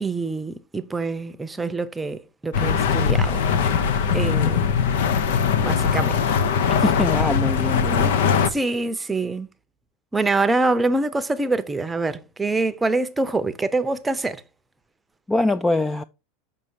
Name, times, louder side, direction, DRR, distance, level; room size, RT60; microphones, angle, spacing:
voice 1, 0.0-3.4 4.1-4.7 5.6-6.4 8.5-9.5 10.1-14.4, right 3 dB, 10° right, 0.7 m, -25 dB
sound 1, 2.5-8.5, left 6 dB, 80° left, 0.8 m, -21 dB
voice 2, 6.8-8.1 15.3-16.0, left 2 dB, 10° left, 0.3 m, -23 dB
6.8 x 5.5 x 4.8 m
supercardioid pair, 135°, 0 cm